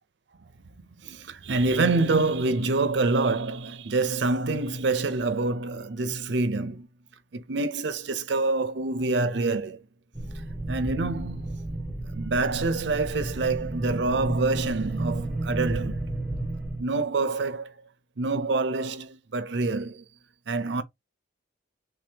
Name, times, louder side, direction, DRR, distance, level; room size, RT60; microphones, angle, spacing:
voice 1, 1.0-6.9 7.3-9.8 10.7-11.5 12.1-16.1 16.8-17.8 18.2-20.0 20.5-20.8, right 3 dB, 70° right, 0.6 m, -26 dB
sound 1, 10.1-16.8, right 2 dB, 5° right, 1.5 m, -32 dB
3.3 x 2.8 x 3.4 m
head